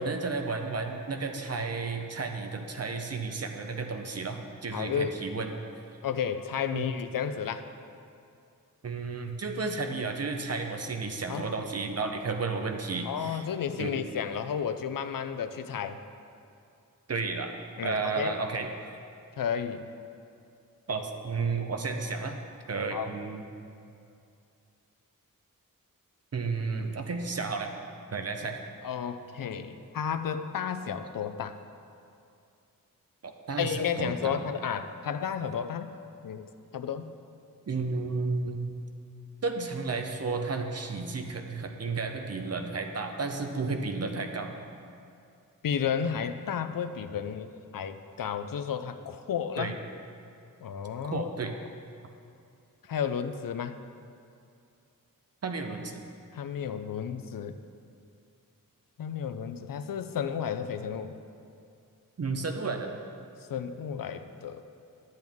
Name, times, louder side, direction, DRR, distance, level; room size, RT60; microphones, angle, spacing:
voice 1, 0.0-5.5 6.7-6.9 8.8-13.4 13.8-14.0 17.1-17.5 17.8-18.7 20.9-22.4 22.7-23.4 26.3-27.7 28.1-28.6 33.2-34.4 37.7-38.7 39.4-44.5 49.6-49.7 51.1-51.5 55.4-56.0 62.2-62.9, right 4 dB, 45° right, 5 dB, 0.7 m, -32 dB
voice 2, 4.7-5.2 6.0-7.7 11.3-11.6 13.0-16.0 17.8-18.3 19.4-19.8 22.9-23.1 28.8-31.6 33.6-35.9 36.2-36.5 36.7-37.1 45.6-49.8 50.6-51.3 52.8-53.8 56.3-57.6 59.0-61.2 63.5-64.6, left 7 dB, 70° left, 9 dB, 0.5 m, -32 dB
10.5 x 7.8 x 3.5 m, 2.5 s
wide cardioid pair, 125°, 35 cm